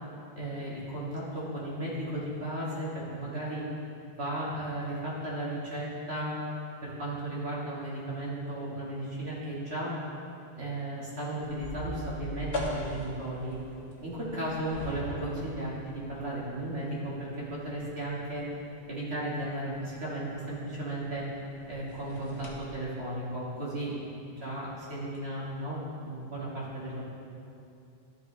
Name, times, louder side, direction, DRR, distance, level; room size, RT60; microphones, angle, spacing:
voice 1, 0.4-3.6 4.2-6.4 6.8-9.9 10.6-13.6 14.0-18.5 18.9-21.3 21.7-23.9 24.3-27.0, right 1 dB, 80° right, -7 dB, 2.3 m, -35 dB
sound 1, 11.4-22.6, equal, 85° left, 1.7 m, -42 dB
13.0 x 5.4 x 3.4 m, 2.6 s
omnidirectional pair, 1.1 m